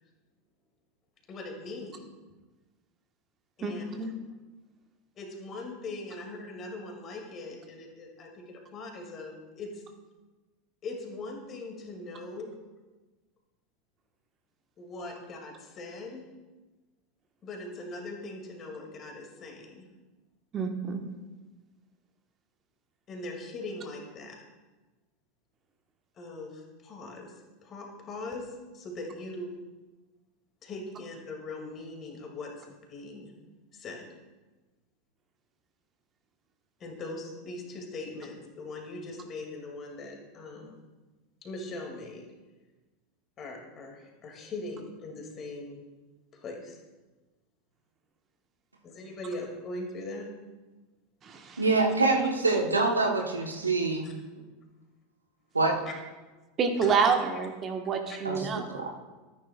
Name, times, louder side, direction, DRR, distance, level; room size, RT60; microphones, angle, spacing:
voice 1, 1.3-2.2 3.6-4.1 5.2-9.8 10.8-12.5 14.8-16.3 17.4-19.8 23.1-24.4 26.1-29.6 30.6-33.3 33.7-34.0 36.8-40.8 41.4-42.3 43.4-45.8 46.3-46.8 48.8-50.3 54.0-54.1 55.9-56.0 56.8-57.1 58.1-58.2, left 2 dB, 35° left, 1 dB, 2.4 m, -41 dB
voice 2, 20.5-21.0 51.2-51.6 56.6-58.9, right 5 dB, 30° right, 4 dB, 1.3 m, -28 dB
voice 3, 51.6-54.1 55.5-55.8 58.2-58.9, right 3 dB, 85° right, 2 dB, 1.2 m, -25 dB
13.0 x 10.0 x 2.4 m, 1.2 s
figure-of-eight pair, 80°, 0 cm